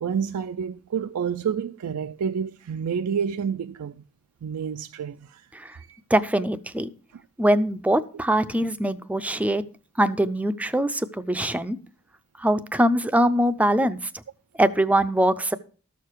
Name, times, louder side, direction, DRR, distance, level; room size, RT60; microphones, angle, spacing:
voice 1, 0.0-4.0 4.4-6.0 7.1-7.2 8.6-8.7, right 7 dB, 80° right, 0.4 m, -29 dB
voice 2, 6.1-6.9 7.4-9.6 10.0-11.8 12.4-14.1 14.6-15.6, right 1 dB, 5° right, 0.5 m, -22 dB
13.5 x 6.7 x 4.5 m
head